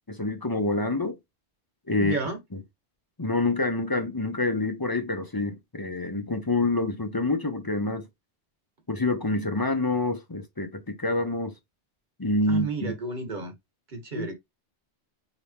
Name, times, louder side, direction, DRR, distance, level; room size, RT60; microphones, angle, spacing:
voice 1, 0.1-1.2 1.9-2.2 3.2-8.0 8.9-11.5 12.2-12.9 14.1-14.3, left 2 dB, 20° left, 0.7 m, -27 dB
voice 2, 2.0-2.4 12.5-13.5 13.9-14.3, right 3 dB, 45° right, 1.3 m, -32 dB
4.9 x 2.9 x 3.4 m
omnidirectional pair, 1.2 m